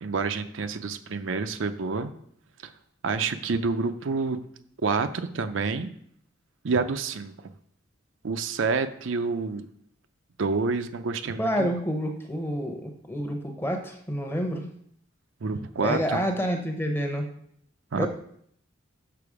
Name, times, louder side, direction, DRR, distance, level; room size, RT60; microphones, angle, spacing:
voice 1, 0.0-2.1 2.6-2.7 3.0-4.4 4.8-5.9 6.6-7.3 8.2-9.6 10.4-11.7 15.4-16.2 17.9-18.1, right 4 dB, 70° right, 9 dB, 0.5 m, -28 dB
voice 2, 11.4-14.7 15.8-17.3 17.9-18.1, equal, 10° left, 3 dB, 0.8 m, -28 dB
6.8 x 5.7 x 4.8 m, 0.68 s
head